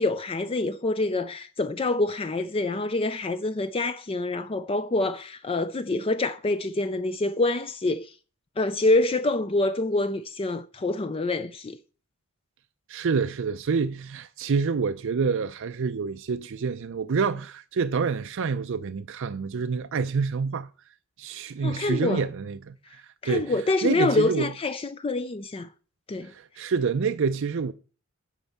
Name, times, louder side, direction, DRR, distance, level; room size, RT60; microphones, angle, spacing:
voice 1, 0.0-8.1 8.6-11.8 21.6-22.2 23.2-25.7 26.1-26.3, left 2 dB, 25° left, 0.4 m, -26 dB
voice 2, 12.9-20.7 21.2-24.5 26.2-27.7, right 5 dB, 65° right, 0.5 m, -27 dB
10.5 x 4.5 x 7.2 m
head